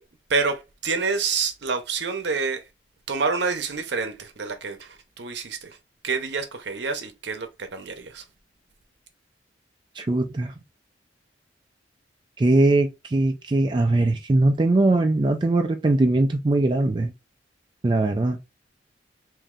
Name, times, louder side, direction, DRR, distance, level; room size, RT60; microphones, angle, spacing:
voice 1, 0.3-2.6 3.1-5.8 6.0-8.2, right 4 dB, 65° right, 0.7 m, -28 dB
voice 2, 10.0-10.5 12.4-17.1 17.8-18.4, right 2 dB, 25° right, 0.3 m, -21 dB
3.1 x 2.6 x 3.7 m
head